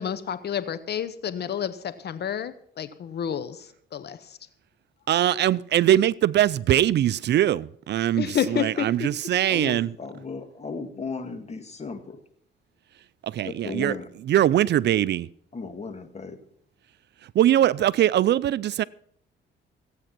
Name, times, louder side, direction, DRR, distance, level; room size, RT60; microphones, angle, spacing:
voice 1, 0.0-4.4 8.2-9.1, left 8 dB, 55° left, 0.8 m, -30 dB
voice 2, 5.1-9.9 13.2-13.9 14.2-15.3 17.2-18.8, right 12 dB, 60° right, 0.4 m, -22 dB
voice 3, 9.5-12.2 13.4-14.1 15.5-16.4, left 4 dB, 35° left, 2.0 m, -35 dB
15.5 x 8.9 x 6.0 m
cardioid pair, 90°, 20 cm